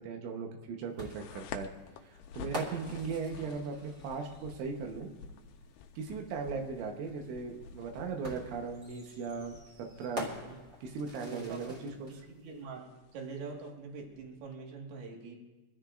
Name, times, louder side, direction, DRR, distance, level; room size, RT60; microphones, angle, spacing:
voice 1, 0.0-1.7 2.0-5.1 6.0-10.3 10.8-12.1, right 5 dB, 90° right, 3 dB, 3.5 m, -38 dB
sound 1, 1.0-4.6 6.1-6.2 8.2-12.1, equal, 30° right, 2.0 m, -45 dB
sound 2, 1.1-14.6, left 6 dB, 85° left, 2.3 m, -51 dB
voice 2, 11.2-11.8 12.2-12.9 13.1-15.4, right 4 dB, 65° right, 0 dB, 3.5 m, -44 dB
24.5 x 13.0 x 2.5 m, 1.1 s
omnidirectional pair, 5.3 m